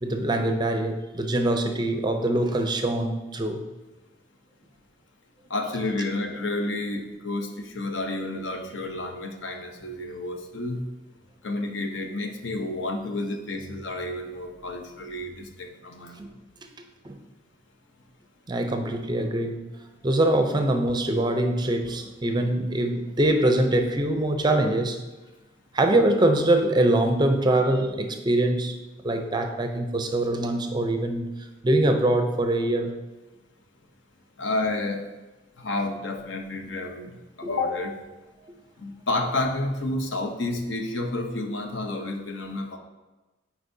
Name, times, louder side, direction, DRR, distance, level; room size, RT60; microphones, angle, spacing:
voice 1, 0.0-3.6 16.2-16.3 17.0-17.2 18.5-19.6 20.0-25.0 25.7-28.8 29.0-31.3 31.6-32.9 37.4-37.5, right 1 dB, 25° right, 5 dB, 0.5 m, -23 dB
voice 2, 5.5-10.8 11.4-16.2 34.4-35.0 35.6-37.1 37.4-38.0 38.8-42.8, left 2 dB, 70° left, 4 dB, 0.7 m, -30 dB
8.1 x 4.6 x 2.7 m, 1.1 s
head